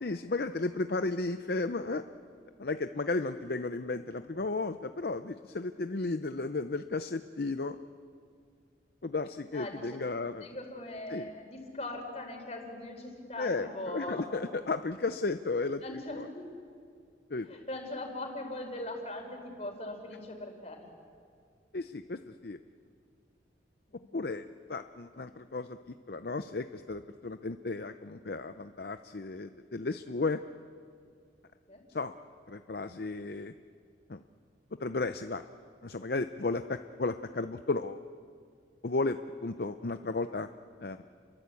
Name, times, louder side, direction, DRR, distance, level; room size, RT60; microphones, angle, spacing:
voice 1, 0.0-2.0 2.6-7.8 9.0-10.5 11.1-11.3 13.4-15.8 16.1-16.3 17.3-17.5 21.7-22.6 24.1-25.8 26.1-30.4 31.9-32.1 32.5-33.5 34.1-34.2 34.8-35.4 35.8-38.0 38.8-40.5 40.8-41.0, left 3 dB, 55° left, 9 dB, 0.6 m, -34 dB
voice 2, 9.5-10.0 10.4-14.3 15.8-16.5 17.5-20.9 23.9-24.2 25.1-25.2 31.7-31.8, left 1 dB, 35° left, 3 dB, 4.3 m, -40 dB
30.0 x 22.5 x 8.4 m, 2.2 s
head